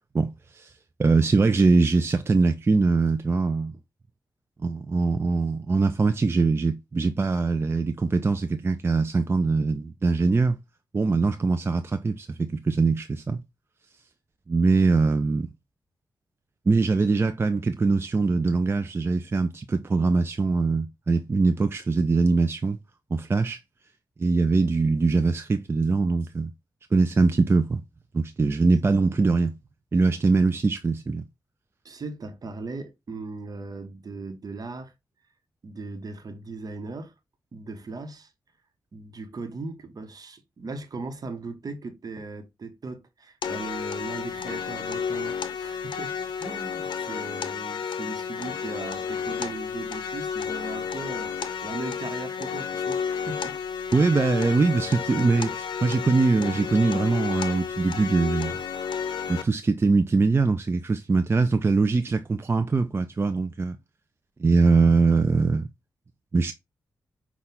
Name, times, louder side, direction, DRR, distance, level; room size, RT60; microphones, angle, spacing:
voice 1, 0.1-0.7 1.0-3.8 4.6-10.6 10.9-13.4 14.5-15.5 16.7-22.8 23.1-23.6 24.2-26.5 26.9-27.8 28.1-29.6 29.9-31.3 53.9-58.6 59.3-63.8 64.4-65.7 66.3-66.5, right 3 dB, 30° right, 0.4 m, -22 dB
voice 2, 31.8-34.9 35.6-37.1 37.5-38.3 38.9-53.6, right 3 dB, 55° right, 1.0 m, -38 dB
sound 1, 43.4-59.4, left 6 dB, 85° left, 0.5 m, -31 dB
5.6 x 2.4 x 3.7 m
cardioid pair, 50°, 8 cm